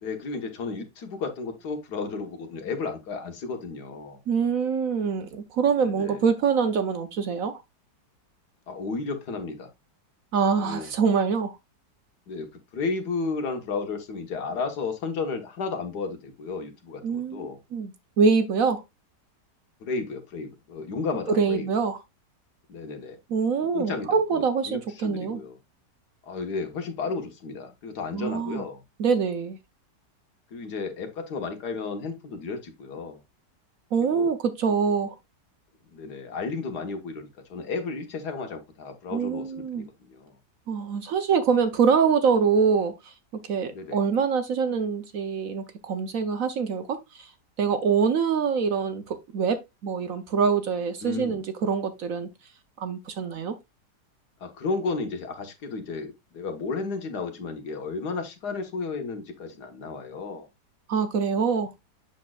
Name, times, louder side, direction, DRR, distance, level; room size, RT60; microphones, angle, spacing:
voice 1, 0.0-4.2 5.8-6.2 8.7-9.7 10.6-10.9 12.3-17.6 19.8-21.7 22.7-23.2 23.7-25.6 26.2-28.8 30.5-33.2 34.1-34.3 35.9-40.3 43.7-44.0 51.0-51.4 54.4-60.5, left 4 dB, 70° left, 1.8 m, -33 dB
voice 2, 4.3-7.6 10.3-11.5 17.0-18.8 21.3-22.0 23.3-25.4 28.1-28.6 29.0-29.6 33.9-35.1 39.1-39.9 40.7-43.1 43.4-47.3 47.6-52.3 52.8-53.6 60.9-61.7, right 6 dB, 60° right, 1.0 m, -25 dB
7.5 x 6.4 x 2.3 m
omnidirectional pair, 1.8 m